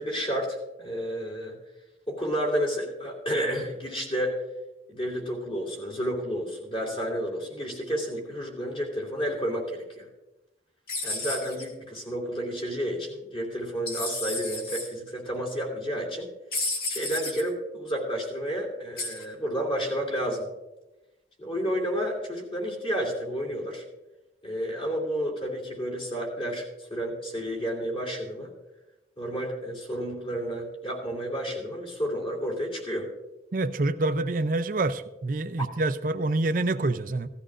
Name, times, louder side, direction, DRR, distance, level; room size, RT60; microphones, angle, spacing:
voice 1, 0.0-1.6 2.1-4.4 4.9-10.1 11.0-16.3 16.9-20.5 21.4-23.8 24.4-28.5 29.2-33.1, equal, 30° left, 0 dB, 2.8 m, -31 dB
sound 1, 10.9-11.6 13.9-14.9 16.5-17.4 19.0-19.2, left 2 dB, 55° left, 2.3 m, -32 dB
voice 2, 33.5-37.3, right 2 dB, 50° right, 10 dB, 0.5 m, -27 dB
17.0 x 13.5 x 2.5 m, 1.0 s
head